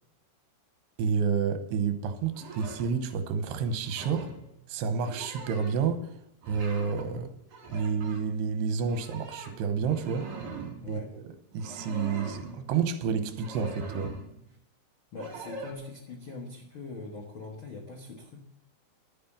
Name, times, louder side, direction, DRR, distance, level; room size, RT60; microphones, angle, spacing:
voice 1, 1.0-4.3 4.7-6.1 6.5-7.3 7.7-10.3 10.9-11.2 11.5-14.1, right 6 dB, 85° right, 9 dB, 3.2 m, -29 dB
sound 1, 2.3-2.9 3.7-4.4 4.9-5.9 6.4-7.1 7.4-8.2 8.9-10.8 11.5-12.6 13.3-14.3 15.2-15.7, right 3 dB, 55° right, 5.4 m, -42 dB
voice 2, 10.8-11.1 15.1-18.4, left 3 dB, 65° left, 0 dB, 1.2 m, -42 dB
11.0 x 9.5 x 7.3 m, 0.81 s
omnidirectional pair, 4.7 m